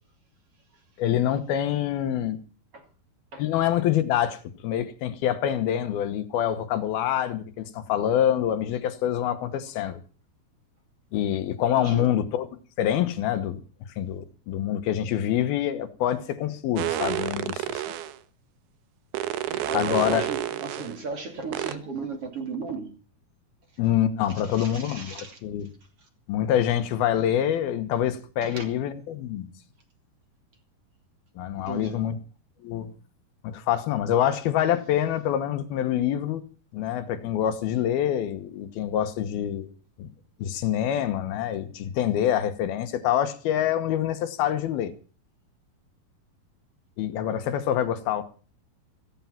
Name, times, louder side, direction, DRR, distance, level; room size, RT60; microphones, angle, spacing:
voice 1, 1.0-2.4 3.4-4.4 4.6-10.0 11.1-12.5 12.8-13.6 14.0-17.8 19.7-20.3 23.8-25.7 26.3-29.5 31.4-32.2 32.6-32.9 33.4-36.4 36.7-39.7 40.0-40.1 40.4-44.9 47.0-48.2, left 10 dB, 75° left, 3.0 m, -26 dB
voice 2, 11.8-12.1 19.5-22.9 24.3-25.4 28.4-28.6 31.7-32.0, right 4 dB, 40° right, 3.3 m, -36 dB
sound 1, 16.8-18.2 19.1-21.0 21.5-21.8, right 12 dB, 85° right, 3.0 m, -30 dB
15.5 x 15.0 x 5.8 m
omnidirectional pair, 4.5 m